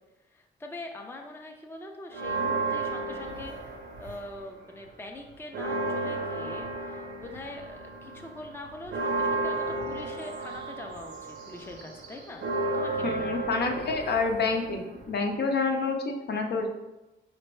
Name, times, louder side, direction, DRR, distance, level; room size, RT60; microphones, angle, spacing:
voice 1, 0.3-12.5 12.7-13.5, left 2 dB, 10° left, 2 dB, 0.5 m, -43 dB
sound 1, 2.1-4.5 4.8-15.3, right 3 dB, 70° right, 0.8 m, -33 dB
voice 2, 13.0-16.7, left 4 dB, 60° left, 3 dB, 0.6 m, -28 dB
4.3 x 3.3 x 3.2 m, 1.0 s
cardioid pair, 90°, 19 cm